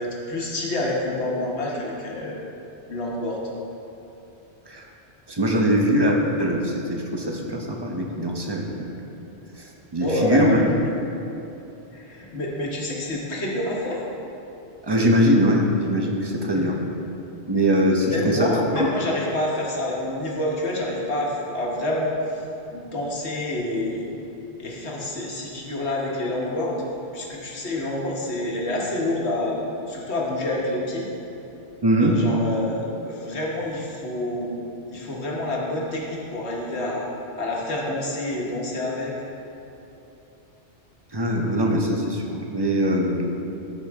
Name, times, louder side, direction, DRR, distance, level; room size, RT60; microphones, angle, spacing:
voice 1, 0.0-2.4 2.9-3.4 10.0-10.7 11.9-14.0 16.5-16.9 18.0-24.1 24.6-26.8 27.1-31.1 32.0-34.6 34.9-37.1 37.4-39.1, left 1 dB, 70° left, -3 dB, 1.5 m, -28 dB
voice 2, 5.3-8.9 9.6-10.6 14.8-16.8 17.5-18.9 31.8-32.2 41.1-43.2, equal, 25° right, 0 dB, 0.8 m, -22 dB
14.5 x 5.1 x 3.6 m, 2.9 s
omnidirectional pair, 1.2 m